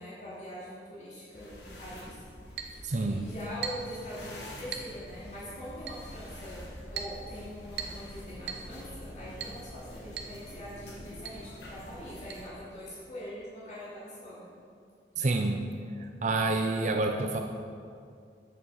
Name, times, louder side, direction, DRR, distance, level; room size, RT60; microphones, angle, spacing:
voice 1, 0.0-2.2 2.5-2.8 3.0-14.5, equal, 40° left, -8 dB, 2.8 m, -43 dB
sound 1, 1.3-12.5, equal, 70° left, 1.7 m, -46 dB
Chink clink, 2.6-2.8 3.6-3.9 4.7-4.9 5.9-6.1 7.0-7.2 7.8-8.0 8.5-8.7 9.4-9.6 10.2-10.4 10.6-10.7 11.2-11.4 12.3-12.4, right 7 dB, 70° right, 0.8 m, -38 dB
voice 2, 2.8-3.2 15.2-15.7 16.2-17.4, right 2 dB, 45° right, 4 dB, 0.5 m, -28 dB
8.3 x 7.0 x 6.3 m, 2.3 s
head